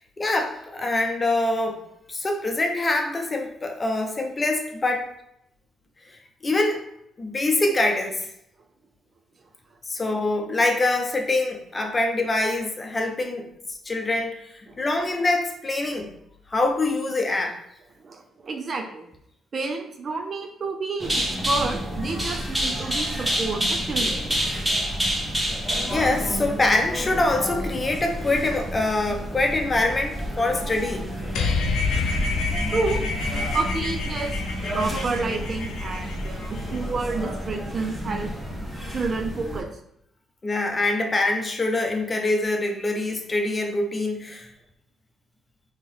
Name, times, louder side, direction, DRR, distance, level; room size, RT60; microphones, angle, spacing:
voice 1, 0.2-1.8 2.1-5.1 6.4-6.8 7.2-8.3 9.9-13.5 13.9-14.4 14.8-16.1 16.5-17.5 25.8-31.1 40.4-44.5, left 2 dB, 25° left, 3 dB, 0.8 m, -24 dB
voice 2, 18.0-19.1 19.5-24.2 32.7-33.0 33.5-34.3 34.7-38.3 38.9-39.7, right 3 dB, 45° right, 5 dB, 0.6 m, -29 dB
sound 1, 21.0-39.6, equal, 15° right, 1.2 m, -29 dB
sound 2, 31.4-37.0, left 4 dB, 90° left, 0.7 m, -28 dB
4.2 x 3.0 x 3.5 m, 0.76 s
cardioid pair, 90°, 0 cm